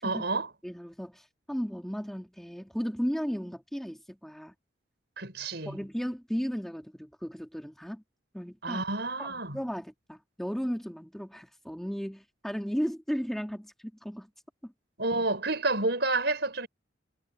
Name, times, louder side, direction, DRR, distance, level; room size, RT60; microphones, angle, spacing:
voice 1, 0.0-0.5 5.2-5.8 8.6-9.6 15.0-16.7, right 2 dB, 60° right, 6.2 m, -29 dB
voice 2, 0.6-4.5 5.6-8.0 8.3-8.8 9.2-13.7 14.0-14.3 14.6-14.7, equal, ahead, 2.4 m, -35 dB
head